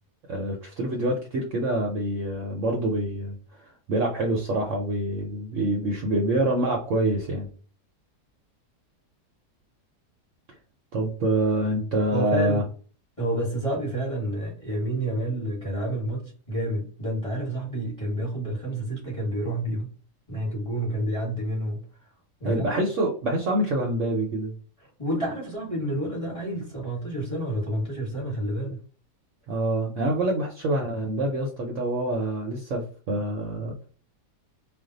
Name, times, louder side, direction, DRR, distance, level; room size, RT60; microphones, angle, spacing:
voice 1, 0.3-7.5 10.9-12.6 22.4-24.5 29.5-33.9, right 1 dB, 65° right, 0 dB, 0.8 m, -26 dB
voice 2, 12.1-12.7 13.2-19.9 20.3-21.8 22.4-22.8 25.0-28.8, right 1 dB, 25° left, -4 dB, 1.1 m, -29 dB
2.6 x 2.2 x 3.7 m, 0.41 s
omnidirectional pair, 1.7 m